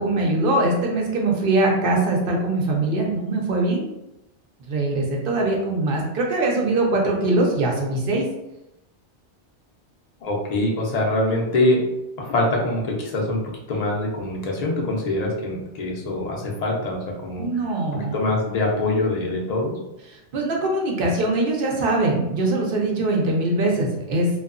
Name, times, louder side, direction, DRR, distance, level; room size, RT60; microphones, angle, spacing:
voice 1, 0.0-3.9 4.7-8.3 17.4-18.2 20.1-24.3, right 2 dB, 60° right, 0 dB, 0.6 m, -22 dB
voice 2, 10.2-11.8 12.2-13.4 13.7-17.4 17.9-19.7, left 2 dB, 45° left, -2 dB, 0.6 m, -24 dB
2.7 x 2.3 x 2.5 m, 0.91 s
omnidirectional pair, 1.2 m